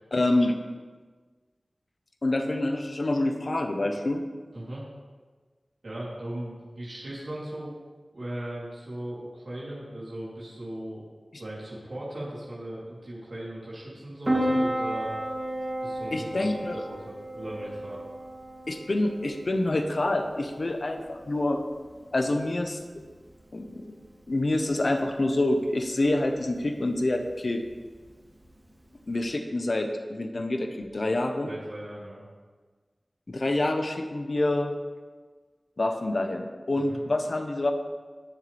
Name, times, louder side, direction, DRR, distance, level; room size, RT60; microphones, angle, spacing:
voice 1, 0.1-0.6 2.2-4.2 16.1-16.8 18.7-21.6 22.1-23.0 23.5-23.9 24.3-27.6 29.1-31.5 33.3-34.7 35.8-37.7, left 2 dB, 60° left, 5 dB, 1.2 m, -27 dB
voice 2, 4.5-4.8 5.8-7.7 8.1-11.0 11.3-15.2 15.8-16.5 16.7-18.0 31.5-32.2 36.7-37.0, right 1 dB, 70° right, -8 dB, 3.6 m, -38 dB
Piano, 14.2-29.2, right 1 dB, 30° right, 2.8 m, -35 dB
21.0 x 7.3 x 3.6 m, 1.4 s
wide cardioid pair, 60°, 0 cm